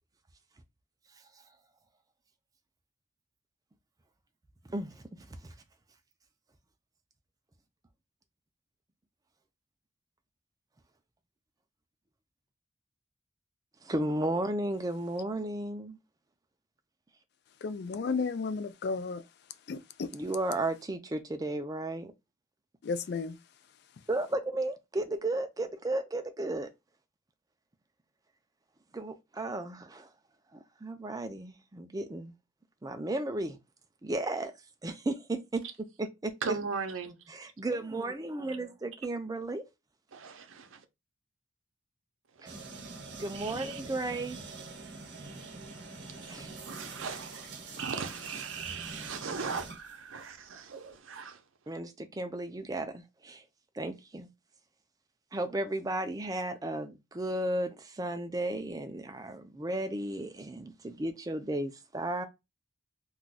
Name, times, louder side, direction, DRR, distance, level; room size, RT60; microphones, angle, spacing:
voice 1, 4.7-5.5 13.8-16.0 20.1-22.1 24.1-26.7 28.9-30.1 30.5-32.3 32.8-33.6 34.0-34.5 34.8-35.6 36.0-36.6 37.3-39.6 42.4-42.5 43.2-44.4 46.3-46.5 51.7-53.4 53.7-54.3 55.3-62.3, right 2 dB, 20° right, 0.4 m, -34 dB
voice 2, 17.6-19.2 19.7-20.1 22.8-23.4, left 4 dB, 55° left, 0.3 m, -33 dB
voice 3, 36.4-37.1 40.1-40.8 42.4-42.6 43.3-43.8 45.2-46.1 46.7-51.4, right 5 dB, 85° right, 0.6 m, -39 dB
sound 1, 42.5-50.3, right 3 dB, 55° right, 0.9 m, -45 dB
2.3 x 2.3 x 3.9 m
head